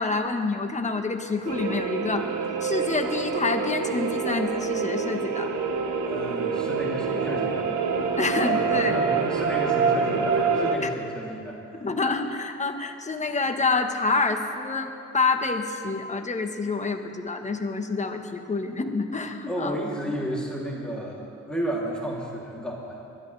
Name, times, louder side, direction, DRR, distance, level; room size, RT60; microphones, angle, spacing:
voice 1, 0.0-2.3 2.6-5.5 8.2-9.0 10.8-10.9 11.8-19.8, left 3 dB, 25° left, 5 dB, 1.3 m, -27 dB
sound 1, 1.5-10.8, right 5 dB, 65° right, 1.1 m, -26 dB
voice 2, 6.0-7.7 8.4-11.8 19.5-23.0, equal, 5° left, -5 dB, 3.0 m, -32 dB
22.0 x 13.0 x 3.4 m, 2.6 s
cardioid pair, 90°, 30 cm